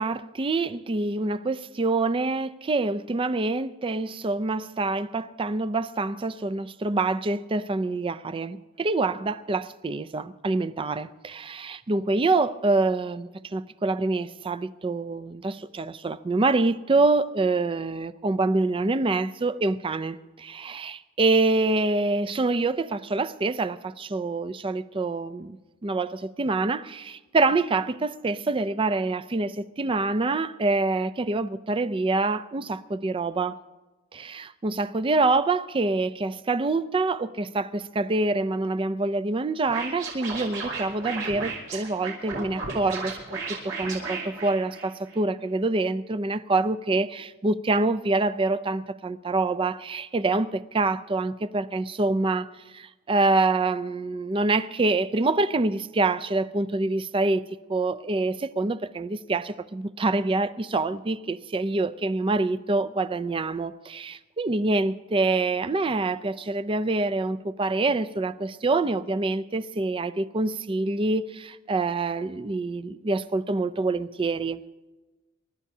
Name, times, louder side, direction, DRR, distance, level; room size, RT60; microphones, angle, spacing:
voice 1, 0.0-25.6 25.8-33.5 34.1-57.4 57.7-74.6, right 3 dB, 25° right, 0.4 m, -26 dB
Scratching (performance technique), 39.7-45.2, right 4 dB, 60° right, 5.5 m, -34 dB
29.5 x 13.0 x 2.7 m
head